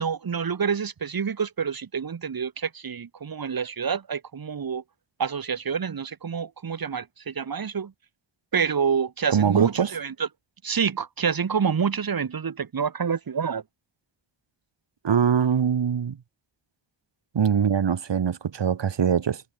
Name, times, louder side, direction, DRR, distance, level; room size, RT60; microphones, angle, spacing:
voice 1, 0.0-4.8 5.2-7.9 8.5-10.3 10.6-13.6, right 6 dB, 45° right, 2.0 m, -27 dB
voice 2, 9.3-9.9 15.0-16.2 17.3-19.4, right 7 dB, 65° right, 2.9 m, -22 dB
wide cardioid pair, 120°, 47 cm